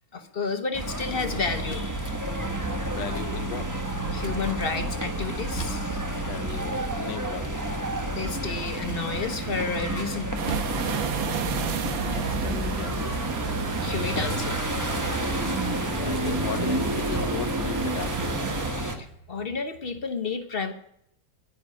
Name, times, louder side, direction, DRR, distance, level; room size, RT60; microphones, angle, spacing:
voice 1, 0.1-1.9 4.1-5.9 8.1-10.6 13.8-14.9 15.2-15.4 19.0-20.7, left 4 dB, 40° left, 8 dB, 1.0 m, -31 dB
sound 1, 0.7-19.0, right 1 dB, 10° right, 1.1 m, -30 dB
voice 2, 2.8-3.7 6.2-7.7 11.7-13.2 15.5-18.4, left 9 dB, 75° left, 14 dB, 1.4 m, -37 dB
sound 2, 10.4-18.7, right 7 dB, 90° right, 1.9 m, -33 dB
10.0 x 10.0 x 8.0 m, 0.73 s
omnidirectional pair, 2.0 m